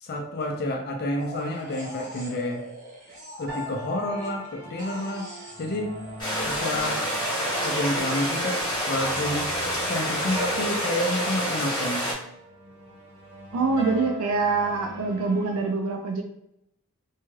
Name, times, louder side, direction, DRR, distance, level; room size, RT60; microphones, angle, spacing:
voice 1, 0.0-2.6 3.4-5.3 5.6-5.9 6.5-7.0 7.6-9.5 9.8-12.1, left 1 dB, 45° left, 2 dB, 0.4 m, -29 dB
sound 1, 1.2-4.5 4.8-7.7, equal, 35° right, 0.8 m, -42 dB
sound 2, 3.5-15.7, right 1 dB, 60° right, 1.1 m, -40 dB
sound 3, 6.2-12.1, equal, 20° left, 1.0 m, -28 dB
voice 2, 13.5-16.2, right 4 dB, 75° right, 3 dB, 0.4 m, -25 dB
2.7 x 2.3 x 3.0 m, 0.79 s
head